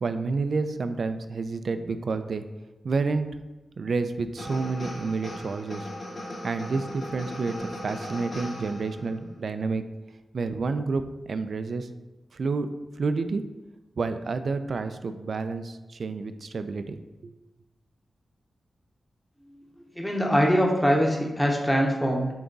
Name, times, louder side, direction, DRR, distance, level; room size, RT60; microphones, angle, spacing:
voice 1, 0.0-2.4 2.8-3.3 3.8-5.9 6.4-9.8 10.3-11.9 12.3-12.7 13.0-13.4 14.0-17.3, right 4 dB, 55° right, 9 dB, 0.5 m, -29 dB
sound 1, 4.4-9.1, left 1 dB, 50° left, 2.0 m, -38 dB
voice 2, 20.0-22.3, equal, 5° left, -1 dB, 1.0 m, -23 dB
8.7 x 3.5 x 4.0 m, 1.1 s
wide cardioid pair, 145°, 0 cm